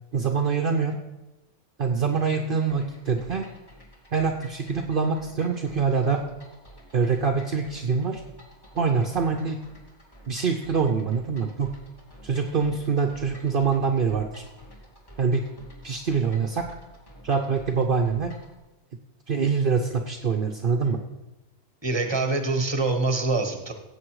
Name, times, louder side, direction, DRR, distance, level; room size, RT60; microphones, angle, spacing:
voice 1, 0.1-1.0 1.8-3.4 4.1-6.2 6.9-8.2 8.7-9.6 10.3-11.7 12.2-14.4 15.2-15.4 15.8-16.7 17.2-18.3 19.3-21.0, right 5 dB, 55° right, 3 dB, 0.9 m, -24 dB
sound 1, 2.7-18.6, equal, 20° left, 2.5 m, -50 dB
voice 2, 21.8-23.7, right 3 dB, 25° right, 6 dB, 1.4 m, -25 dB
16.0 x 8.0 x 4.8 m, 1.0 s
omnidirectional pair, 1.2 m